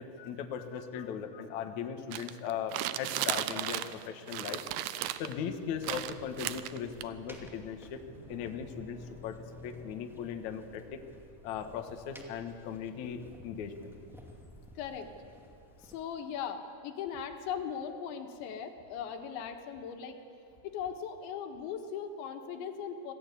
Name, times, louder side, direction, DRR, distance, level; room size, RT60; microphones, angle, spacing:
voice 1, 0.0-4.6 5.2-8.0 8.3-11.0 11.4-14.0, left 7 dB, 60° left, 6 dB, 2.1 m, -38 dB
sound 1, 2.1-4.0 4.3-5.3 5.8-7.0, right 14 dB, 80° right, 2.4 m, -35 dB
sound 2, 5.5-16.0, equal, 5° right, 0.4 m, -55 dB
sound 3, 8.1-12.6, left 1 dB, 55° right, 6.0 m, -52 dB
voice 2, 14.8-15.1 15.8-20.2 20.6-23.1, left 7 dB, 90° left, 5 dB, 3.8 m, -39 dB
26.0 x 18.0 x 8.4 m, 2.5 s
omnidirectional pair, 5.1 m